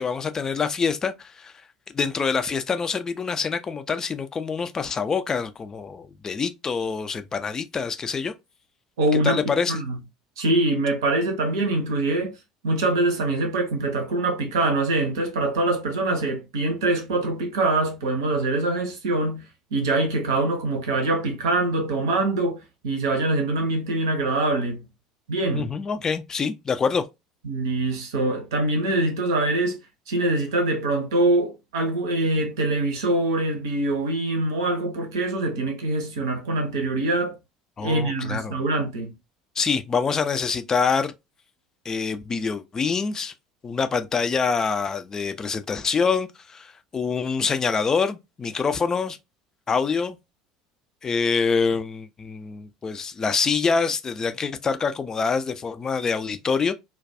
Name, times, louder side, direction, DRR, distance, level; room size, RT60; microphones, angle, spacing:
voice 1, 0.0-1.5 1.9-8.3 9.2-9.8 25.5-27.0 37.8-38.6 39.6-41.1 41.8-43.3 43.6-49.2 49.7-50.2 51.0-56.7, left 5 dB, 25° left, 0.4 m, -25 dB
voice 2, 9.0-10.0 10.4-12.3 12.6-19.5 19.7-24.8 25.3-25.7 27.4-29.8 30.1-37.4 37.8-39.1, right 2 dB, 65° right, 0.6 m, -24 dB
2.2 x 2.2 x 2.5 m
figure-of-eight pair, 65°, 2 cm